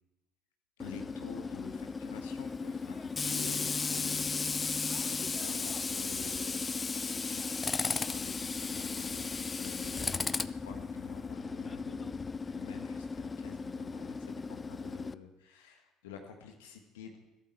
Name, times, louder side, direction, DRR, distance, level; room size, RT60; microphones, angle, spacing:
voice 1, 0.8-17.2, left 6 dB, 80° left, 4 dB, 1.4 m, -49 dB
Tools, 0.8-15.1, left 4 dB, 25° left, 0.6 m, -35 dB
22.0 x 12.5 x 4.5 m, 1.1 s
hypercardioid pair, 60°, 0 cm